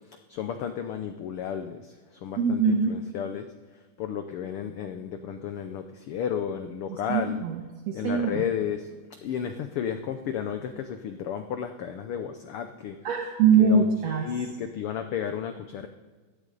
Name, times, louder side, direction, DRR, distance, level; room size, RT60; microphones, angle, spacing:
voice 1, 0.1-3.4 4.0-7.4 7.9-8.9 9.2-13.0 13.6-15.9, left 8 dB, 80° left, 7 dB, 1.2 m, -33 dB
voice 2, 2.4-2.9 6.9-8.4 13.0-14.2, right 5 dB, 70° right, 2 dB, 2.1 m, -23 dB
16.5 x 13.0 x 4.0 m, 1.4 s
omnidirectional pair, 3.4 m